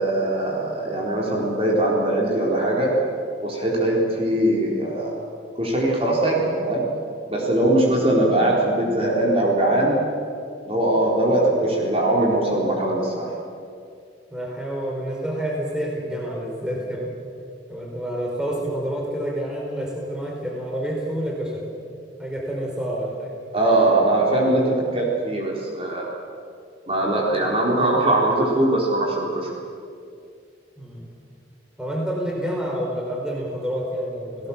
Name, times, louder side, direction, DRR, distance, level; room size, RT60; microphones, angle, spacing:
voice 1, 0.0-2.9 3.4-5.2 5.6-6.8 7.3-10.0 10.6-13.3 23.5-26.1 26.9-29.5, right 1 dB, 30° right, -3 dB, 4.1 m, -21 dB
voice 2, 14.3-17.1 17.7-21.7 22.2-23.4 30.8-31.1 31.8-34.5, equal, 5° right, -1 dB, 4.3 m, -28 dB
30.0 x 18.0 x 7.3 m, 2.4 s
head